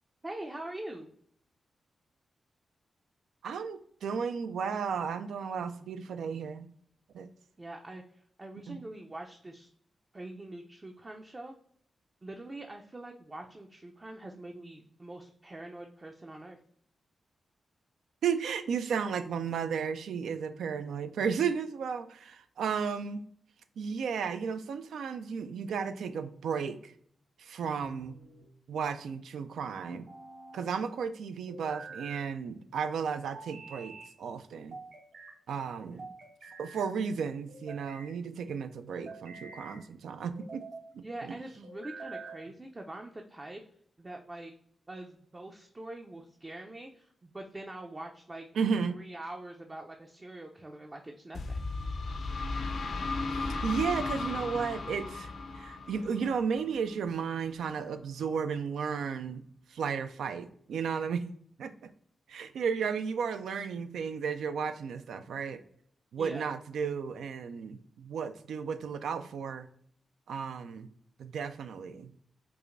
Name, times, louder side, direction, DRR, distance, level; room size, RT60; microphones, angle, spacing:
voice 1, 0.2-1.1 7.6-9.7 10.1-11.5 12.2-16.6 35.8-36.0 41.0-43.6 44.0-44.5 44.9-48.5 48.9-51.6 66.2-66.5, right 1 dB, 30° right, 2 dB, 0.4 m, -44 dB
voice 2, 3.4-6.7 7.1-7.3 8.7-8.8 18.2-23.2 23.8-26.9 27.4-28.2 28.7-30.1 30.5-34.8 35.5-36.1 36.6-40.6 40.9-41.3 48.5-49.0 53.2-55.3 55.5-59.4 59.7-61.3 61.6-61.7 62.3-65.6 66.1-69.7 70.3-70.9 71.2-72.1, right 6 dB, 90° right, 10 dB, 0.3 m, -34 dB
sound 1, 27.8-28.5 29.9-30.6 31.5-32.3 33.3-34.1 34.7-35.4 36.0-36.9 37.5-38.1 38.9-39.8 40.3-40.9 41.6-42.5, right 3 dB, 70° right, 1.0 m, -47 dB
sound 2, 51.3-57.0, left 3 dB, 70° left, 0.5 m, -35 dB
4.7 x 2.5 x 2.5 m, 0.63 s
cardioid pair, 70°, 0 cm